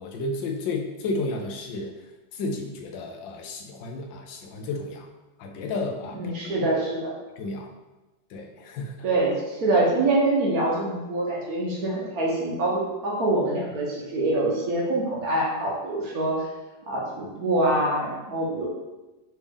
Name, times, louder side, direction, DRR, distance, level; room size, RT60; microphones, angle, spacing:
voice 1, 0.0-2.0 2.3-5.1 5.4-6.2 6.6-6.7 7.4-7.7 8.3-8.9, left 3 dB, 90° left, 2 dB, 1.4 m, -32 dB
voice 2, 6.1-7.1 9.0-16.5 16.9-18.7, right 2 dB, 60° right, -3 dB, 1.3 m, -25 dB
4.1 x 3.4 x 3.4 m, 1.1 s
omnidirectional pair, 2.0 m